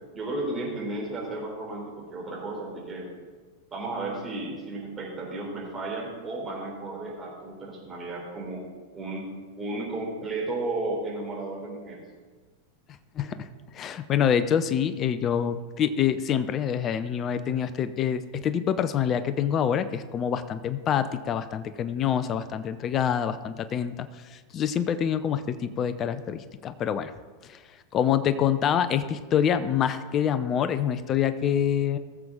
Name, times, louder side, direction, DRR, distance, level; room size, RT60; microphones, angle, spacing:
voice 1, 0.1-3.1 3.7-8.6 8.9-9.3 9.6-12.0, right 2 dB, 15° right, -3 dB, 3.8 m, -33 dB
voice 2, 13.2-13.5 13.7-27.1 27.4-27.6 27.9-32.0, left 8 dB, 30° left, 13 dB, 0.5 m, -26 dB
19.5 x 7.6 x 3.8 m, 1.4 s
figure-of-eight pair, 90°, 0 cm